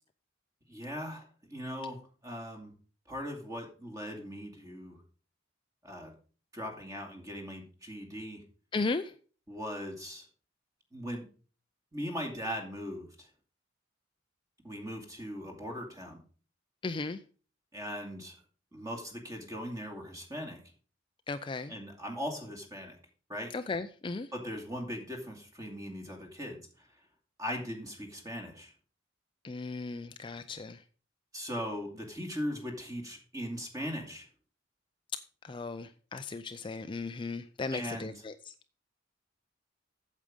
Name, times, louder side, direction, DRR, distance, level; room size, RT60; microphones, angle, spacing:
voice 1, 0.7-2.7 3.1-5.0 5.8-6.1 6.5-8.4 9.5-10.3 10.9-11.3 11.9-13.3 14.6-16.2 17.7-18.3 18.7-20.6 21.7-22.9 23.3-23.5 24.3-26.6 27.4-28.7 31.3-34.3 37.7-38.2, equal, 20° right, 2 dB, 2.5 m, -39 dB
voice 2, 8.7-9.1 16.8-17.2 21.3-21.7 23.5-24.3 29.4-30.8 35.4-38.3, left 3 dB, 25° left, 9 dB, 0.4 m, -36 dB
8.6 x 7.5 x 5.2 m, 0.39 s
head